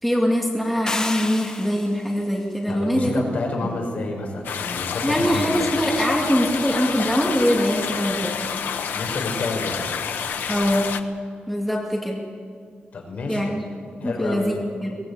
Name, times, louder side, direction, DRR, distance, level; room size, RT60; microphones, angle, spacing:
voice 1, 0.0-3.2 5.0-8.3 10.5-10.9 11.5-12.2 13.3-13.6 14.0-15.0, equal, ahead, -2 dB, 2.3 m, -23 dB
sound 1, 0.9-2.1, left 2 dB, 25° left, 1.6 m, -30 dB
voice 2, 2.7-5.7 8.9-9.9 12.9-13.4 14.0-14.6, left 3 dB, 50° left, 1 dB, 5.9 m, -29 dB
sound 2, 4.4-11.0, left 7 dB, 80° left, 1.2 m, -29 dB
23.0 x 19.0 x 8.6 m, 2.2 s
wide cardioid pair, 175°, 3 cm